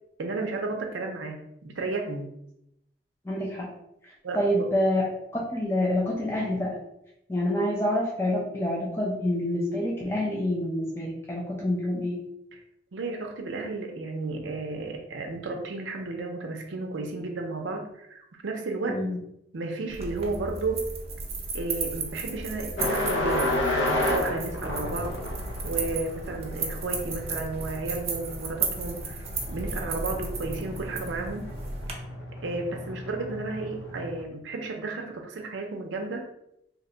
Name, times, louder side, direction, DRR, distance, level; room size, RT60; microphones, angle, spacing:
voice 1, 0.2-2.3 4.2-4.7 12.9-19.0 19.5-20.9 21.5-25.2 25.6-31.5 32.4-36.3, right 3 dB, 85° right, 3 dB, 0.5 m, -33 dB
voice 2, 3.2-3.7 4.3-6.8 7.3-12.2 18.9-19.2, left 1 dB, 15° left, -4 dB, 0.5 m, -27 dB
sound 1, 19.9-31.9, right 3 dB, 35° right, 0.5 m, -34 dB
sound 2, 22.8-34.2, left 1 dB, 75° left, 0.5 m, -33 dB
2.9 x 2.2 x 3.8 m, 0.79 s
head